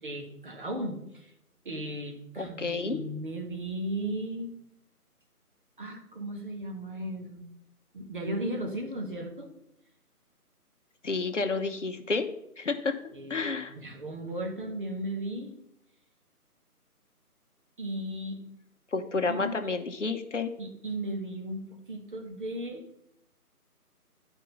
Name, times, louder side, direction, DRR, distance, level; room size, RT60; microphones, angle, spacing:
voice 1, 0.0-1.3 1.6-4.5 5.8-7.5 7.9-9.5 13.1-15.6 17.8-18.4 19.3-19.6 20.6-23.0, right 1 dB, 35° right, 2 dB, 1.4 m, -36 dB
voice 2, 2.4-3.0 11.0-13.0 13.3-13.7 18.9-20.5, left 4 dB, 50° left, 7 dB, 1.0 m, -30 dB
11.0 x 4.6 x 5.3 m, 0.79 s
figure-of-eight pair, 160°, 46 cm